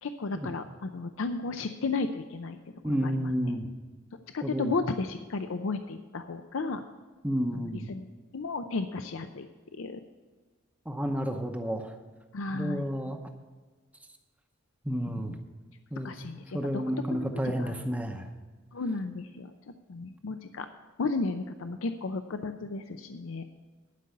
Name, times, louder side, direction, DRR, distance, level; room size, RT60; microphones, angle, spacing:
voice 1, 0.0-2.6 2.8-3.3 4.3-6.8 7.5-8.1 8.3-9.5 9.7-10.0 12.3-12.9 15.1-15.4 16.0-16.8 17.1-17.7 18.7-19.5 19.9-20.7 21.0-23.4, left 3 dB, 80° left, 8 dB, 0.5 m, -34 dB
voice 2, 2.8-3.7 4.4-4.7 7.2-7.9 10.9-11.9 12.5-13.2 14.8-15.3 15.9-16.1 16.4-18.3, equal, 5° right, 4 dB, 0.7 m, -31 dB
11.5 x 5.4 x 8.4 m, 1.4 s
head